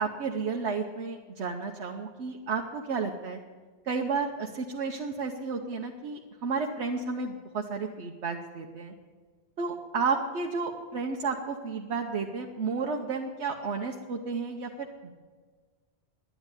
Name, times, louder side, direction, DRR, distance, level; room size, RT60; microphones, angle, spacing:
voice 1, 0.0-3.4 3.8-8.9 9.6-15.1, right 4 dB, 80° right, 2 dB, 1.2 m, -32 dB
10.5 x 10.0 x 9.7 m, 1.5 s
omnidirectional pair, 1.1 m